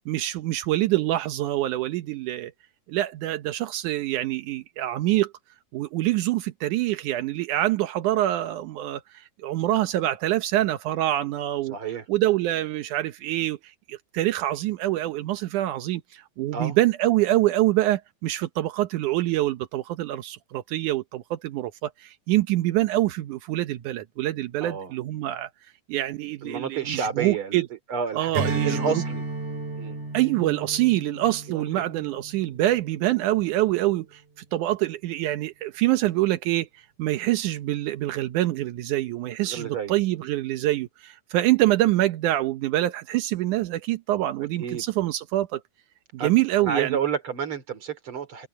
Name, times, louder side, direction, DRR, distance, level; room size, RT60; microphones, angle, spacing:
voice 1, 0.0-2.5 2.9-5.3 5.7-11.8 12.1-25.5 25.9-27.7 28.1-29.0 30.1-34.2 34.5-45.6 46.1-47.0, right 15 dB, 85° right, 2.4 m, -25 dB
voice 2, 11.7-12.1 16.5-16.8 24.6-24.9 26.4-27.6 27.9-29.2 29.7-30.0 31.5-31.8 39.4-39.9 44.6-44.8 46.2-46.3 46.6-48.5, right 7 dB, 45° right, 3.7 m, -30 dB
Strum, 28.3-33.1, right 2 dB, 65° right, 5.8 m, -33 dB
omnidirectional pair, 3.5 m